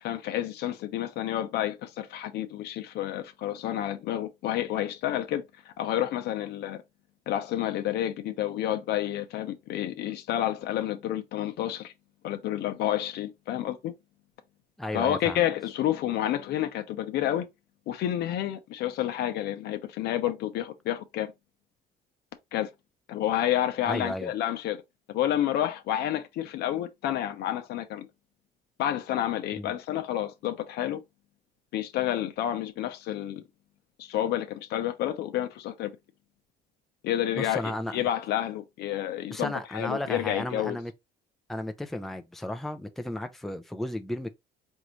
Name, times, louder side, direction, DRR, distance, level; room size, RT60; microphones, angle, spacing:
voice 1, 0.0-6.8 7.3-11.9 12.2-13.9 14.9-17.5 17.9-21.3 22.5-22.7 23.1-24.8 25.1-28.1 28.8-31.0 31.7-33.4 34.0-36.0 37.0-40.8, left 12 dB, 75° left, 0.8 m, -30 dB
voice 2, 14.8-15.5 23.9-24.3 29.5-29.7 37.3-38.0 39.3-40.9 41.5-44.3, left 1 dB, ahead, 0.5 m, -34 dB
4.7 x 2.7 x 3.0 m
cardioid pair, 110°, 17 cm